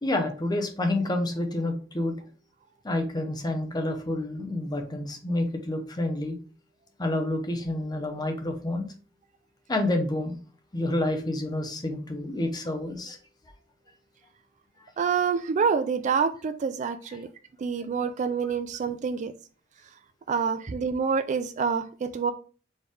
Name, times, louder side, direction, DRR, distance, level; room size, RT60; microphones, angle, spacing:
voice 1, 0.0-2.2 2.8-6.4 7.0-8.9 9.7-10.4 10.7-13.2 14.8-14.9 17.1-17.2, left 1 dB, 20° left, 0.8 m, -29 dB
voice 2, 15.0-17.3 17.6-19.3 20.3-22.3, right 6 dB, 40° right, 0.3 m, -27 dB
4.3 x 3.3 x 3.4 m
head